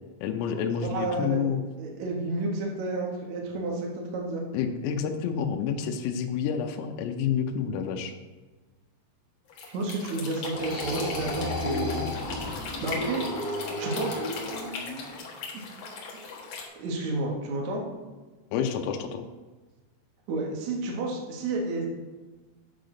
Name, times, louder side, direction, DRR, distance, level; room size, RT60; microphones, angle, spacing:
voice 1, 0.2-1.6 4.5-8.1 18.5-19.3, left 7 dB, 90° left, 4 dB, 3.4 m, -29 dB
voice 2, 0.8-4.4 9.7-12.0 12.8-13.3 13.8-14.2 16.7-17.8 20.3-21.9, right 2 dB, 85° right, -1 dB, 1.6 m, -31 dB
sound 1, 9.5-16.7, left 4 dB, 65° left, 1.9 m, -38 dB
sound 2, 10.4-15.2, left 1 dB, 50° left, 1.8 m, -33 dB
10.5 x 6.6 x 3.9 m, 1.3 s
omnidirectional pair, 5.8 m